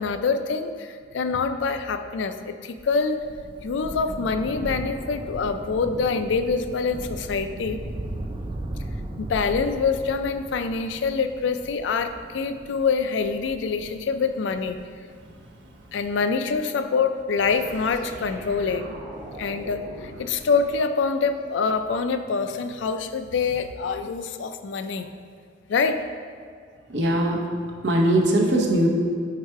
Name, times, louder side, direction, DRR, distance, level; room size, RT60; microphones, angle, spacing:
voice 1, 0.0-3.2 3.6-7.8 9.2-14.8 15.9-18.9 19.4-25.1 25.7-26.0, left 5 dB, 80° left, 9 dB, 0.4 m, -25 dB
Thunder, 2.8-15.6 16.5-16.6, right 1 dB, 25° right, 0.3 m, -37 dB
sound 1, 17.4-21.3, equal, 45° right, 1.3 m, -41 dB
voice 2, 26.9-27.4 27.8-28.9, right 1 dB, 70° right, 0 dB, 0.8 m, -20 dB
4.8 x 4.4 x 4.6 m, 2.1 s
head